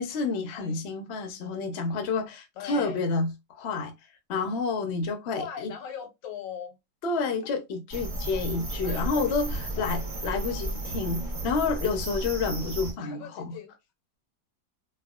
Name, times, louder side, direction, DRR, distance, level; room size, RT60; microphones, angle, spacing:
voice 1, 0.0-3.9 4.3-5.7 7.0-13.6, left 4 dB, 70° left, 0.6 m, -29 dB
voice 2, 2.6-3.0 5.3-6.8 8.8-9.9 13.0-13.7, left 7 dB, 85° left, 1.3 m, -40 dB
sound 1, 7.9-12.9, right 1 dB, 65° right, 0.4 m, -33 dB
3.4 x 2.0 x 2.3 m
omnidirectional pair, 1.9 m